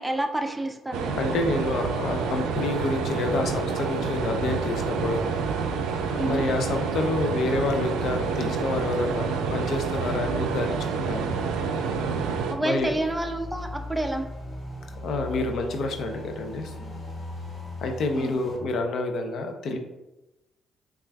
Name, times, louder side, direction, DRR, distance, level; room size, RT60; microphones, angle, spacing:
voice 1, 0.0-1.2 6.2-6.4 12.5-14.2 18.1-18.3, right 1 dB, 10° right, 4 dB, 0.4 m, -29 dB
sound 1, 0.9-12.5, right 5 dB, 90° right, 0.3 m, -28 dB
voice 2, 1.2-5.2 6.1-11.3 12.6-12.9 15.0-17.0 17.8-19.8, left 2 dB, 70° left, 5 dB, 0.5 m, -28 dB
sound 2, 12.7-18.6, left 1 dB, 30° left, 0.9 m, -38 dB
5.7 x 2.4 x 2.2 m, 1.0 s
cardioid pair, 90°, 0 cm